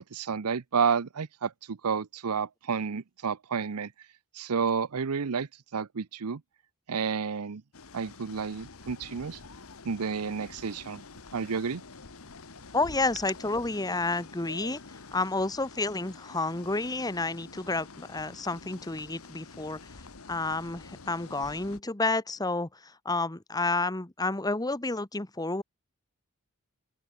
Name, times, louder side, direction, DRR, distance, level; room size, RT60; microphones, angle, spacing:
voice 1, 0.0-3.9 4.3-6.4 6.9-7.6 7.9-9.4 9.8-11.0 11.3-11.8, right 6 dB, 85° right, 0.7 m, -30 dB
sound 1, 7.7-21.8, left 4 dB, 70° left, 1.4 m, -48 dB
voice 2, 12.7-14.8 15.1-19.9 20.3-25.6, left 3 dB, 15° left, 1.3 m, -30 dB
open air
head